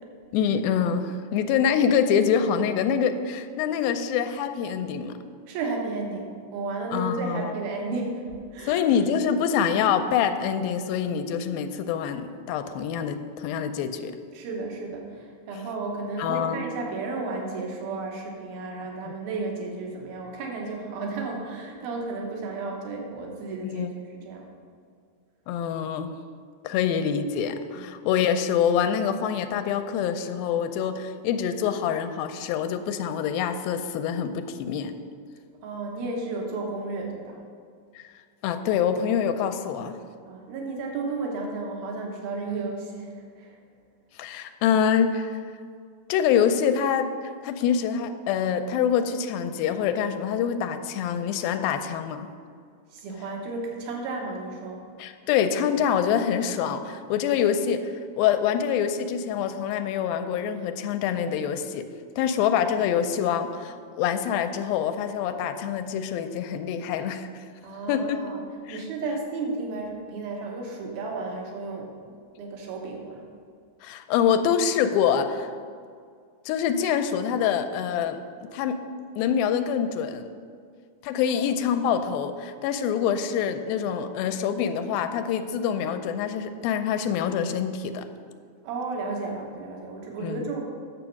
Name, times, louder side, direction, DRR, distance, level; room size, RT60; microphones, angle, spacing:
voice 1, 0.3-5.2 6.9-7.5 8.7-14.1 16.2-16.6 23.6-23.9 25.5-26.1 26.6-34.9 38.0-38.1 38.4-40.0 44.2-45.3 46.1-47.1 47.4-52.3 55.0-61.9 62.2-67.3 67.9-68.2 68.7-68.8 73.8-75.5 76.5-78.2 78.5-78.9 79.2-80.3 81.0-88.1 90.2-90.4, left 8 dB, 85° left, 8 dB, 2.4 m, -25 dB
voice 2, 5.5-8.2 8.5-8.9 14.3-24.5 26.7-26.9 27.7-27.9 35.6-37.4 40.3-43.6 52.9-54.8 57.2-57.3 67.6-68.4 68.7-71.9 72.4-73.2 81.3-81.5 88.6-90.6, right 3 dB, 85° right, 0 dB, 3.1 m, -33 dB
9.1 x 7.1 x 5.8 m, 2.2 s
omnidirectional pair, 4.2 m